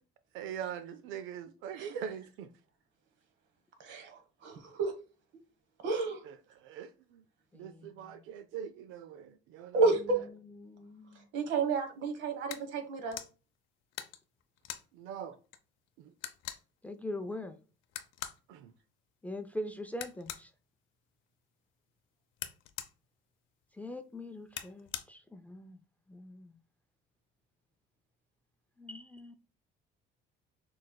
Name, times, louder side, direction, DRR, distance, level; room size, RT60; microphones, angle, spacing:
voice 1, 0.3-2.5 6.3-7.2 7.5-9.8 14.9-15.4 16.0-16.1 18.5-18.7, right 9 dB, 85° right, 0.4 m, -42 dB
voice 2, 3.8-4.9 5.8-6.2 9.7-10.2 11.3-13.2, right 3 dB, 65° right, 1.2 m, -31 dB
voice 3, 7.5-8.2 10.0-10.1 10.4-11.3 16.8-17.6 19.2-20.5 23.8-25.8 26.1-26.6 28.8-29.3, left 1 dB, 5° left, 0.4 m, -42 dB
sound 1, 12.5-12.7 13.1-13.3 13.9-14.9 15.5-15.6 15.9-16.0 16.2-16.6 17.8-18.4 19.9-20.5 22.4-22.9 24.5-25.0, left 11 dB, 80° left, 0.6 m, -42 dB
6.3 x 3.2 x 2.2 m
cardioid pair, 120°, 20 cm